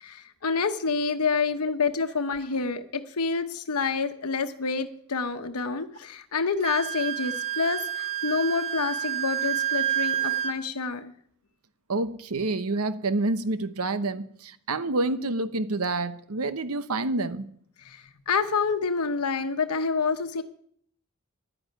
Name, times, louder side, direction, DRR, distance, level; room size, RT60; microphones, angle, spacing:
voice 1, 0.0-11.1 17.8-20.4, left 4 dB, 90° left, 7 dB, 1.1 m, -28 dB
Wind instrument woodwind instrument, 6.6-10.6, right 10 dB, 25° right, 1.2 m, -29 dB
voice 2, 11.9-17.5, right 2 dB, 80° right, 13 dB, 1.0 m, -28 dB
11.0 x 10.0 x 9.3 m, 0.64 s
head